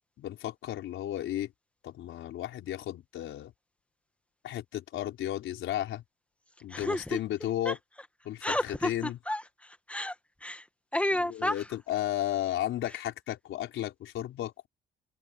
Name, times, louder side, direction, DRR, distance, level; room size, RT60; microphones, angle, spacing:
voice 1, 0.2-1.5 1.8-3.5 4.4-6.0 6.6-7.8 8.2-9.2 11.3-14.7, left 12 dB, 80° left, 4.5 m, -34 dB
voice 2, 6.7-7.2 7.6-7.8 8.4-10.2 10.4-10.7 10.9-11.7, left 1 dB, 5° left, 2.0 m, -31 dB
cardioid pair, 90°, 20 cm